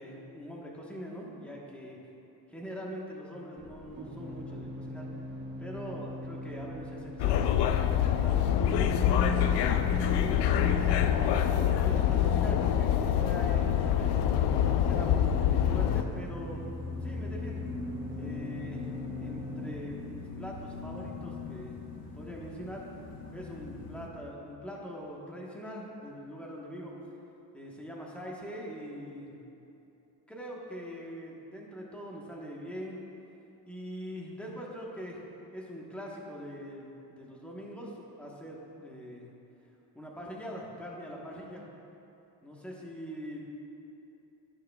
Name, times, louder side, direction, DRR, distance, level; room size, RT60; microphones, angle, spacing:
voice 1, 0.0-2.0 2.5-5.1 5.6-11.4 11.8-16.6 17.0-17.6 18.2-18.9 19.2-21.8 22.1-22.8 23.3-27.0 27.5-29.4 30.3-33.0 33.7-35.2 35.5-39.3 39.9-41.7 42.4-43.5, equal, 5° left, -3 dB, 1.2 m, -42 dB
sound 1, 3.6-19.8, equal, 25° right, 1.0 m, -44 dB
sound 2, 7.2-16.0, left 10 dB, 75° left, 0.6 m, -26 dB
sound 3, 8.4-24.1, left 2 dB, 60° left, 1.2 m, -39 dB
17.5 x 6.7 x 2.3 m, 2.9 s
cardioid pair, 150°, 41 cm